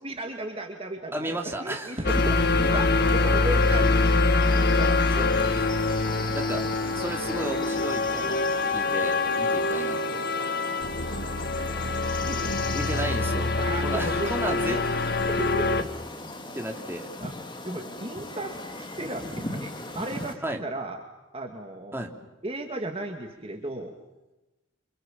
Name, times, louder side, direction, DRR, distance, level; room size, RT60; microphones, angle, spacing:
voice 1, 0.0-3.9 4.4-5.2 11.0-12.8 13.6-14.8 15.3-15.9 17.2-17.3 17.6-21.0 21.3-22.0 22.4-23.9, right 1 dB, 30° right, 3 dB, 2.5 m, -35 dB
voice 2, 1.1-2.1 3.0-3.2 5.2-5.7 6.3-6.6 6.9-10.2 12.7-15.0 16.4-17.1 20.4-20.6 21.9-22.2, right 1 dB, 10° right, 2 dB, 3.3 m, -34 dB
sound 1, 2.0-15.8, left 3 dB, 50° left, 2.0 m, -24 dB
sound 2, 2.1-20.3, left 2 dB, 25° left, 2.9 m, -39 dB
29.0 x 27.0 x 7.6 m, 1.0 s
head